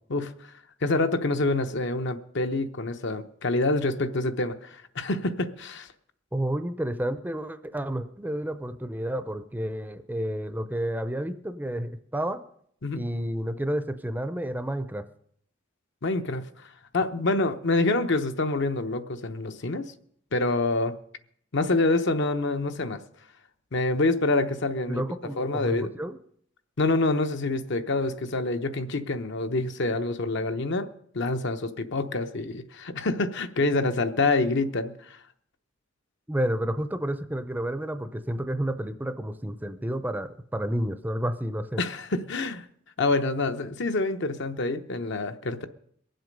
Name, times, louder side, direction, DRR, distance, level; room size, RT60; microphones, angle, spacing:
voice 1, 0.1-0.5 0.8-5.9 12.8-13.1 16.0-16.7 16.9-19.9 20.3-21.0 21.5-23.0 23.7-25.0 25.4-25.9 26.8-30.9 31.1-35.2 41.8-42.7 43.0-45.7, left 2 dB, 65° left, 8 dB, 0.9 m, -26 dB
voice 2, 6.3-12.4 12.9-15.0 24.9-26.2 36.3-41.8, right 1 dB, 10° right, 11 dB, 0.5 m, -30 dB
22.5 x 7.8 x 5.3 m, 0.66 s
head